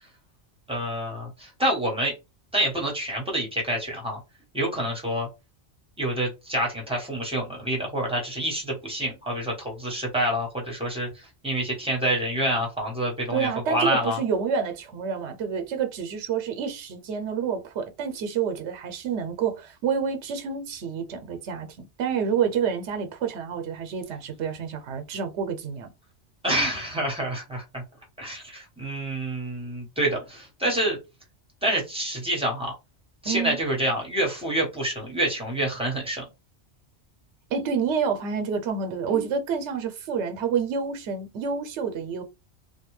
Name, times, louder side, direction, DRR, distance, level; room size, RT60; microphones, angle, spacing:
voice 1, 0.7-2.1 2.5-4.2 4.5-5.3 6.0-14.2 26.4-27.8 28.2-31.0 31.6-32.7 33.2-36.2, right 1 dB, 5° right, 1.0 m, -27 dB
voice 2, 13.3-25.9 33.3-33.6 37.5-42.2, right 6 dB, 80° right, 0.9 m, -28 dB
2.5 x 2.3 x 3.1 m
omnidirectional pair, 1.2 m